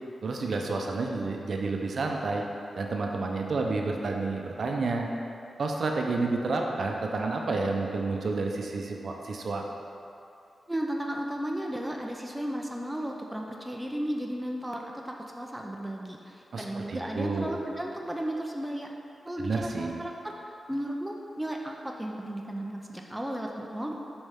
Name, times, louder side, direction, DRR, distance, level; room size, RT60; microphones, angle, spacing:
voice 1, 0.2-2.4 2.8-5.1 5.6-9.6 16.5-17.5 19.4-19.9, right 3 dB, 55° right, 1 dB, 0.6 m, -30 dB
voice 2, 10.7-18.9 19.3-24.0, right 1 dB, 5° right, 0 dB, 0.5 m, -34 dB
7.0 x 5.4 x 3.5 m, 2.7 s
wide cardioid pair, 125°, 0 cm